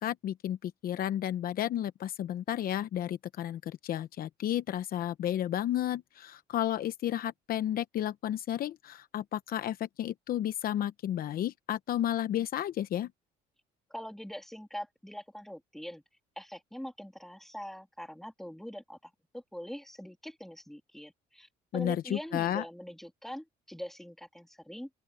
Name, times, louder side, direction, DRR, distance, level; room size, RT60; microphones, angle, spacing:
voice 1, 0.0-13.1 21.7-22.6, left 11 dB, 60° left, 0.9 m, -32 dB
voice 2, 13.9-16.0 16.3-24.9, equal, ahead, 3.4 m, -43 dB
open air
cardioid pair, 110°, 17 cm